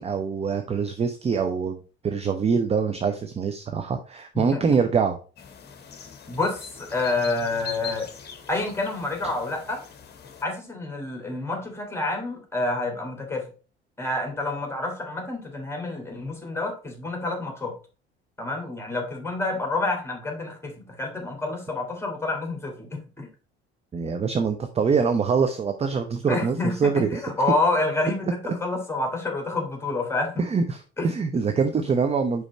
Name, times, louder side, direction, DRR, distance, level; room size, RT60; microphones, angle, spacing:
voice 1, 0.0-5.2 23.9-27.2 30.5-30.8 31.0-32.4, right 5 dB, 20° right, 7 dB, 0.6 m, -24 dB
sound 1, 5.4-10.4, left 8 dB, 30° left, 1.1 m, -42 dB
voice 2, 6.3-8.1 8.5-9.8 10.4-13.5 14.0-17.7 18.4-23.3 26.3-30.4 31.0-31.1, left 2 dB, 10° left, 2 dB, 2.3 m, -28 dB
5.1 x 4.7 x 4.1 m, 0.37 s
figure-of-eight pair, 60°, 31 cm